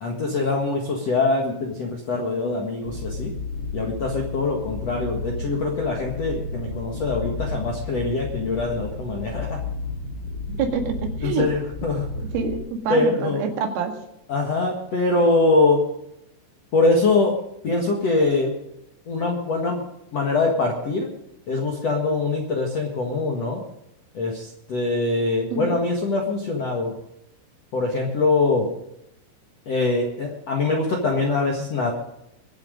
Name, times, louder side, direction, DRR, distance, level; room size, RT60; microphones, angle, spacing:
voice 1, 0.0-3.3 3.7-9.6 11.2-12.0 12.9-13.4 14.3-15.8 16.7-17.3 17.6-18.5 19.1-19.8 20.1-21.1 21.5-23.6 24.1-24.4 24.7-26.9 27.7-28.7 29.7-31.9, left 3 dB, 60° left, -1 dB, 1.6 m, -23 dB
sound 1, 2.8-12.6, left 3 dB, 30° left, 1.9 m, -32 dB
voice 2, 10.6-11.5 12.2-13.9 25.5-25.7, right 5 dB, 85° right, 3 dB, 4.5 m, -26 dB
23.5 x 8.0 x 5.2 m, 0.82 s
omnidirectional pair, 5.7 m